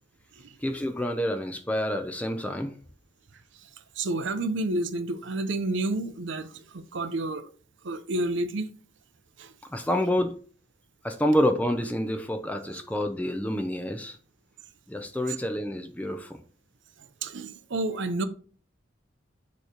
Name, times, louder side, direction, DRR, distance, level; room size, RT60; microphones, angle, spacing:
voice 1, 0.6-2.7 9.7-10.4 11.0-14.2 14.9-16.4, equal, 5° left, 0.5 m, -28 dB
voice 2, 4.0-7.5 7.8-8.7 9.4-9.5 15.3-15.4 17.2-18.2, right 2 dB, 70° right, 0.6 m, -30 dB
6.6 x 3.1 x 5.0 m
head